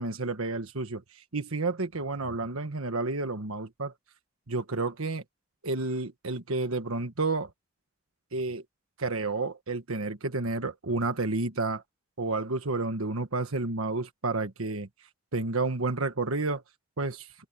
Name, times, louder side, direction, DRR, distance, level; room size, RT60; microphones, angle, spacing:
voice 1, 0.0-3.9 4.5-5.2 5.6-7.5 8.3-8.6 9.0-11.8 12.2-14.9 15.3-16.6 17.0-17.3, right 3 dB, 85° right, 1.4 m, -30 dB
open air
head